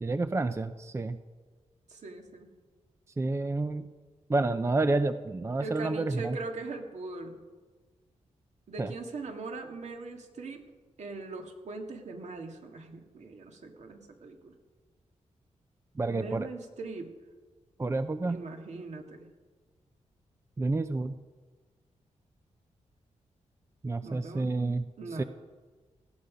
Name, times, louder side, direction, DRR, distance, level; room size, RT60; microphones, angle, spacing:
voice 1, 0.0-1.2 3.2-3.9 4.3-6.4 8.8-8.9 16.0-16.5 17.8-18.4 20.6-21.1 23.8-24.8 25.2-25.3, right 2 dB, 20° right, 10 dB, 0.6 m, -29 dB
voice 2, 1.9-2.5 5.6-7.4 8.7-10.7 11.0-14.6 16.1-17.2 18.3-19.3 24.0-24.5 25.0-25.2, right 3 dB, 65° right, 3 dB, 2.2 m, -40 dB
18.0 x 14.5 x 5.2 m, 1.4 s
wide cardioid pair, 125°, 12 cm